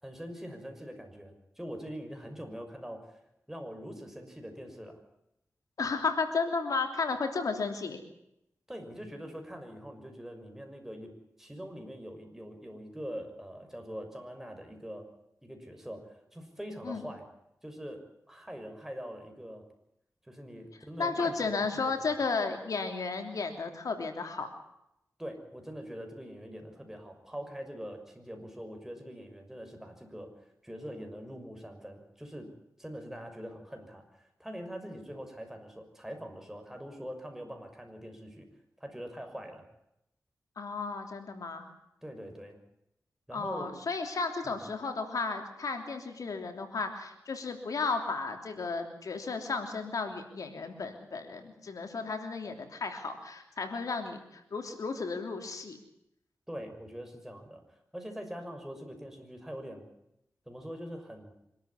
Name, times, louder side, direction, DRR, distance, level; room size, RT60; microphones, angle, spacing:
voice 1, 0.0-3.2 3.5-5.0 8.7-15.1 15.4-17.2 17.6-19.6 20.3-21.9 25.2-30.3 30.6-32.5 32.8-38.5 38.8-39.6 42.0-42.6 43.3-43.7 44.4-44.6 56.5-59.8 60.5-61.3, equal, 5° right, 4 dB, 6.3 m, -43 dB
voice 2, 5.8-8.0 16.8-17.0 21.0-24.5 40.6-41.7 43.3-55.8, left 4 dB, 80° left, 5 dB, 3.1 m, -33 dB
25.5 x 13.0 x 9.7 m, 0.81 s
cardioid pair, 55°, 6 cm